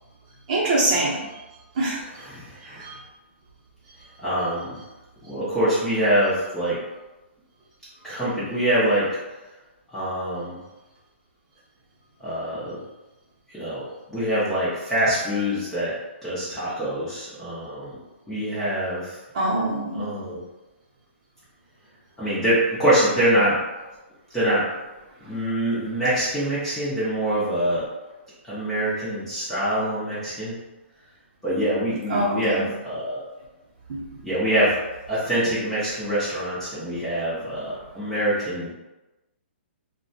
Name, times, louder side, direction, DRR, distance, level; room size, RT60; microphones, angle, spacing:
voice 1, 0.5-1.2 1.8-2.0 2.6-3.0 19.3-20.0 32.1-32.6 33.9-34.0, right 2 dB, 35° right, -5 dB, 0.7 m, -24 dB
voice 2, 2.1-2.8 4.2-4.8 5.2-6.8 8.0-9.2 9.9-10.6 12.2-12.8 13.5-15.9 16.2-18.0 18.3-19.2 19.9-20.4 22.2-23.6 24.3-24.7 25.3-27.9 28.4-30.5 31.4-33.3 34.2-34.8 35.1-38.7, right 1 dB, 5° left, -11 dB, 0.5 m, -24 dB
2.6 x 2.1 x 2.6 m, 1.1 s
hypercardioid pair, 170°, 7 cm